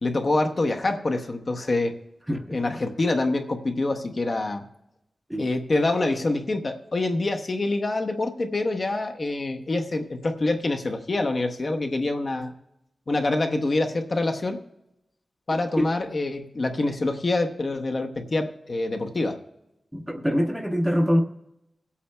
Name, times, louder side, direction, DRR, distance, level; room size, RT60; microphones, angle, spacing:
voice 1, 0.0-1.9 2.5-4.6 5.4-12.5 13.1-14.6 15.5-19.4, left 2 dB, 40° left, 4 dB, 0.7 m, -26 dB
voice 2, 2.3-2.8 5.3-5.4 15.8-15.9 19.9-21.2, equal, 5° right, 4 dB, 0.7 m, -24 dB
25.0 x 8.4 x 2.2 m, 0.86 s
wide cardioid pair, 140°, 0 cm